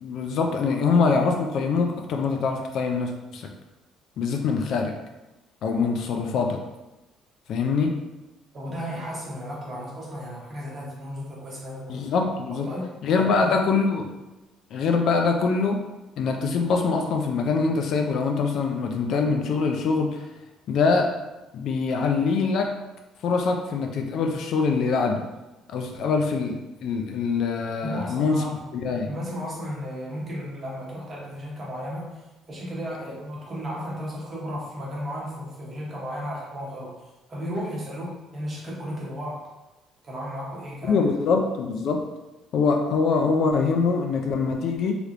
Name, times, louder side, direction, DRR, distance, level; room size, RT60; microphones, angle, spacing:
voice 1, 0.0-3.5 4.2-5.0 5.6-6.6 7.5-7.9 11.9-12.7 13.0-14.1 14.7-15.8 16.2-20.2 20.7-21.2 21.5-22.8 23.2-25.2 25.7-26.6 26.8-28.4 28.7-29.1 40.9-42.0 42.5-45.0, left 4 dB, 50° left, 3 dB, 0.3 m, -24 dB
voice 2, 8.5-12.0 12.5-12.9 13.2-13.6 27.8-28.6 29.1-32.2 32.5-37.0 37.3-39.5 40.0-41.1, equal, 25° right, -4 dB, 0.9 m, -34 dB
3.3 x 2.9 x 2.4 m, 1.0 s
cardioid pair, 160°, 0 cm